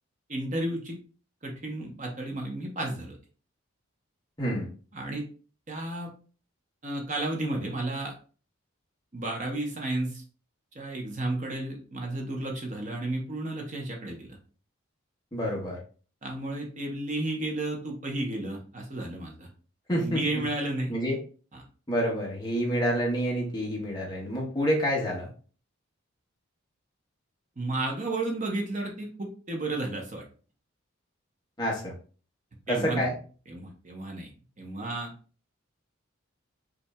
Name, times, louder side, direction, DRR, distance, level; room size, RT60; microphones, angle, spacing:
voice 1, 0.3-1.0 1.4-3.2 4.9-5.2 5.7-6.1 6.8-8.1 9.1-10.2 10.7-14.4 16.2-19.5 20.0-20.9 21.5-21.6 27.6-30.2 32.7-33.1 33.5-34.3 34.6-35.1, right 2 dB, 35° right, 1 dB, 0.8 m, -32 dB
voice 2, 4.4-4.7 15.3-15.8 19.9-20.2 20.9-21.2 21.9-25.3 31.6-31.9 32.7-33.1, equal, 20° left, -3 dB, 1.0 m, -28 dB
5.4 x 2.6 x 2.2 m, 0.39 s
head